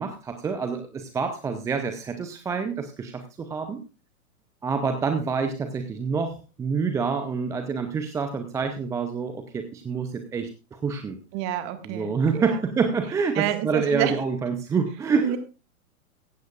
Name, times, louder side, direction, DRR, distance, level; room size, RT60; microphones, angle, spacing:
voice 1, 0.0-3.8 4.6-11.2 11.8-15.4, right 5 dB, 5° right, 8 dB, 0.6 m, -27 dB
voice 2, 11.3-12.6 13.4-14.2 15.2-15.4, right 11 dB, 30° right, 9 dB, 1.8 m, -28 dB
16.0 x 15.5 x 2.4 m, 0.31 s
figure-of-eight pair, 105°, 43 cm